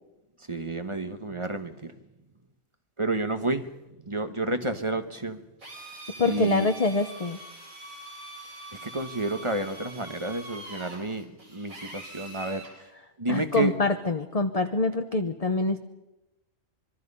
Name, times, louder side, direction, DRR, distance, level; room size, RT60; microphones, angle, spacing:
voice 1, 0.5-1.9 3.0-3.7 4.0-5.4 6.2-6.7 8.7-12.9 13.2-13.7, right 2 dB, 25° right, 1.2 m, -30 dB
Drill, 5.6-12.8, right 1 dB, 70° right, 4.8 m, -43 dB
voice 2, 6.2-7.4 13.3-15.8, left 3 dB, 30° left, 0.9 m, -25 dB
25.5 x 23.0 x 5.5 m
omnidirectional pair, 1.5 m